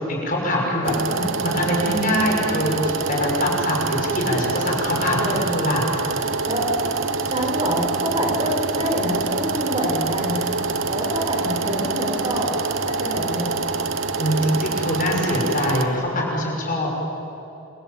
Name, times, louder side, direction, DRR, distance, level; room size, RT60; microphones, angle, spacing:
voice 1, 0.0-0.9 1.4-5.8 14.2-16.9, left 1 dB, 40° left, -1 dB, 6.1 m, -23 dB
sound 1, 0.8-15.9, right 4 dB, 60° right, 1.3 m, -26 dB
voice 2, 1.1-1.6 5.2-5.5 6.4-6.7 7.2-10.4 10.9-13.5, equal, 25° right, -1 dB, 5.6 m, -26 dB
28.0 x 22.5 x 9.0 m, 2.9 s
head